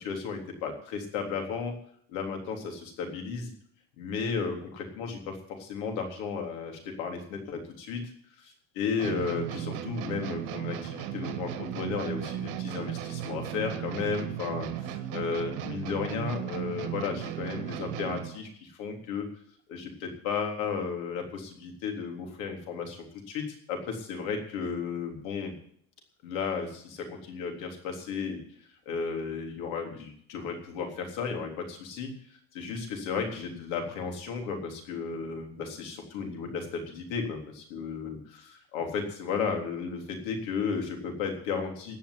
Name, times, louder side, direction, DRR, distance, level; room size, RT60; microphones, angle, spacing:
voice 1, 0.0-1.7 2.1-3.5 4.0-8.0 8.4-19.3 19.7-25.5 26.2-28.4 28.9-32.1 32.5-42.0, left 5 dB, 85° left, 3 dB, 3.7 m, -34 dB
sound 1, 9.0-18.4, right 11 dB, 65° right, 1.7 m, -36 dB
16.5 x 5.8 x 9.9 m, 0.62 s
cardioid pair, 140°, 40 cm